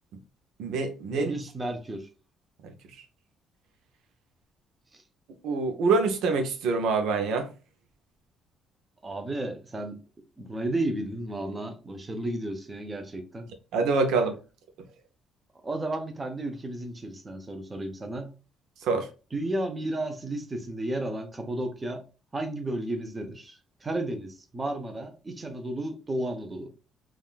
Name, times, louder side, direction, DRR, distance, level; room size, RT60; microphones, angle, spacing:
voice 1, 0.6-1.3 2.6-2.7 5.4-7.5 13.7-14.3 18.8-19.1, right 4 dB, 85° right, 0.6 m, -25 dB
voice 2, 1.1-2.1 4.9-5.0 9.0-10.0 10.4-13.5 15.6-18.3 19.3-22.0 22.3-26.7, right 1 dB, 20° right, 0.6 m, -33 dB
3.5 x 2.3 x 2.4 m
cardioid pair, 115°, 0 cm